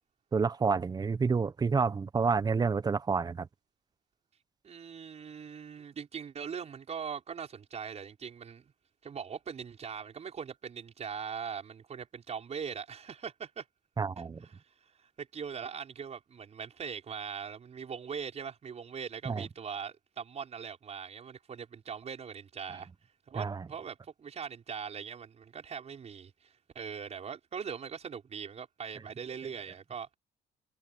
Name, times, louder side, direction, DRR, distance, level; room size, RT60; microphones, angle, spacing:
voice 1, 0.3-3.5 14.0-14.4 19.2-19.5 23.3-23.6, right 5 dB, 25° right, 0.9 m, -29 dB
voice 2, 4.6-8.7 9.0-13.7 14.4-22.9 23.3-30.1, right 7 dB, 40° right, 5.4 m, -41 dB
cardioid pair, 110°, 17 cm